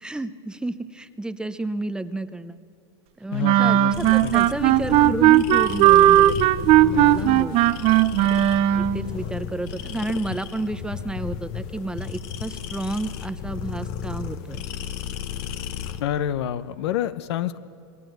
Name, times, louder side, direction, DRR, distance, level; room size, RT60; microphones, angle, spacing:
voice 1, 0.0-2.6 3.2-7.6 8.7-14.7, right 2 dB, 5° right, 11 dB, 0.8 m, -31 dB
voice 2, 3.3-4.3 16.0-17.6, left 10 dB, 75° left, 13 dB, 1.0 m, -28 dB
sound 1, 3.4-9.1, right 13 dB, 45° right, 0.7 m, -17 dB
sound 2, 3.9-16.0, left 9 dB, 55° left, 1.2 m, -33 dB
26.5 x 20.0 x 8.0 m, 2.4 s
supercardioid pair, 125°, 14 cm